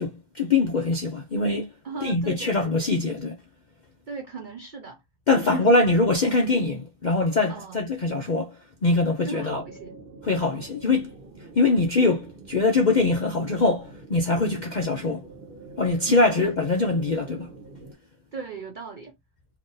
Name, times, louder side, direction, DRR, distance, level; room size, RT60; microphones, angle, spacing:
voice 1, 0.0-1.7 2.0-3.4 5.3-8.5 8.8-9.6 10.2-11.1 11.6-15.2 15.8-17.5, left 3 dB, 60° left, 0.4 m, -23 dB
voice 2, 1.8-2.7 4.1-5.0 5.3-5.8 7.5-7.8 9.2-9.9 16.1-16.5 18.3-19.1, right 4 dB, 70° right, 0.4 m, -37 dB
sound 1, 9.4-17.9, right 3 dB, 45° right, 0.9 m, -45 dB
2.9 x 2.6 x 3.8 m
omnidirectional pair, 1.5 m